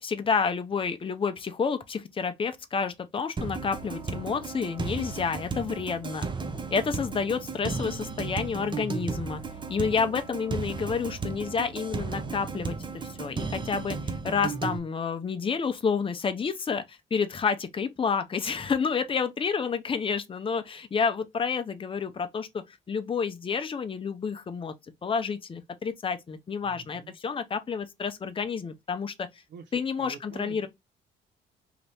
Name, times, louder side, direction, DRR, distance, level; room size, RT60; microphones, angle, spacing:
voice 1, 0.0-6.3 6.7-9.4 9.7-24.7 25.0-29.3 29.7-30.7, left 5 dB, 25° left, 0.6 m, -29 dB
sound 1, 3.4-14.8, right 4 dB, 25° right, 0.6 m, -34 dB
voice 2, 26.6-27.1 29.5-30.7, right 6 dB, 70° right, 0.7 m, -47 dB
2.9 x 2.6 x 3.3 m
cardioid pair, 90°, 20 cm